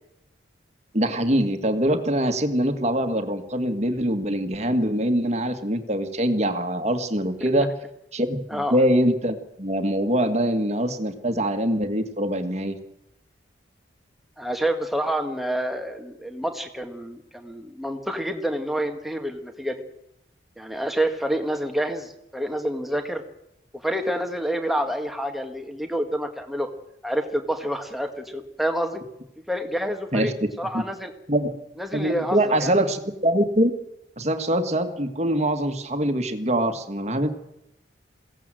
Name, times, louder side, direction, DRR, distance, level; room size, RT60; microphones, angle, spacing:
voice 1, 0.9-7.7 8.1-12.8 30.1-30.3 30.7-30.8 31.3-31.6 31.9-33.7 34.2-37.3, right 1 dB, 35° right, 8 dB, 1.7 m, -23 dB
voice 2, 14.4-19.8 20.6-23.2 23.8-26.7 27.0-29.0 29.5-31.1 31.8-32.7, right 1 dB, ahead, 5 dB, 1.7 m, -28 dB
22.0 x 17.0 x 7.6 m, 0.84 s
head